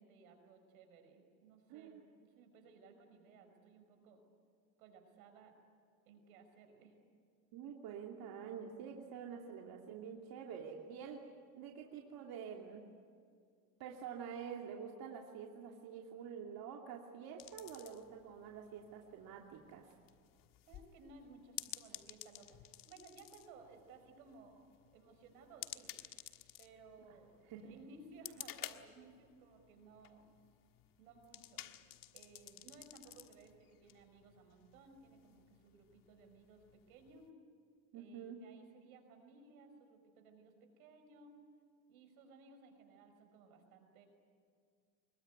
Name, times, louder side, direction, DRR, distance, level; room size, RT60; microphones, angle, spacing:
voice 1, 0.0-4.2 4.8-5.6 6.1-7.0 20.6-26.0 26.6-30.3 31.0-31.7 32.1-37.3 37.9-41.4 41.9-44.1, right 3 dB, 90° right, 5 dB, 5.6 m, -60 dB
voice 2, 1.7-2.1 7.5-11.3 11.6-12.9 13.8-19.9 27.5-27.7 37.9-38.4, right 7 dB, 60° right, 1 dB, 2.7 m, -48 dB
sound 1, 17.4-37.3, left 13 dB, 55° left, 1.5 m, -54 dB
25.0 x 22.0 x 9.4 m, 2.2 s
supercardioid pair, 100°, 41 cm